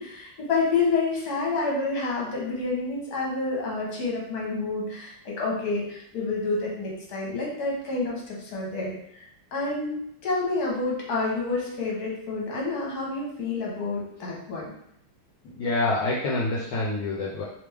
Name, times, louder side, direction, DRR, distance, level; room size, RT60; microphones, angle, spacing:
voice 1, 0.0-10.0 10.2-14.7, left 3 dB, 60° left, -3 dB, 1.6 m, -28 dB
voice 2, 15.4-17.4, left 2 dB, 75° left, -4 dB, 1.3 m, -27 dB
3.4 x 3.3 x 3.3 m, 0.73 s
omnidirectional pair, 2.0 m